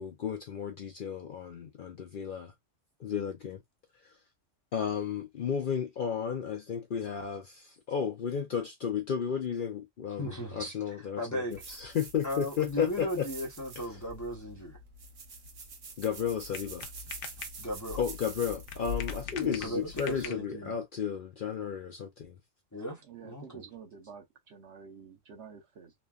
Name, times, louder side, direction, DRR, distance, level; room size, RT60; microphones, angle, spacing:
voice 1, 0.0-2.5 3.0-3.6 4.7-11.4 11.7-13.3 16.0-16.9 18.0-22.4, left 7 dB, 55° left, 0.6 m, -33 dB
voice 2, 10.2-11.8 12.2-14.8 17.6-18.0 19.3-20.7 22.7-23.6, equal, 20° left, 0.7 m, -37 dB
sound 1, 11.5-20.3, left 1 dB, 90° right, 1.2 m, -44 dB
sound 2, 15.1-20.7, left 8 dB, 75° left, 0.9 m, -45 dB
voice 3, 23.0-25.9, right 6 dB, 70° right, 1.0 m, -49 dB
3.2 x 2.3 x 2.3 m
omnidirectional pair, 1.3 m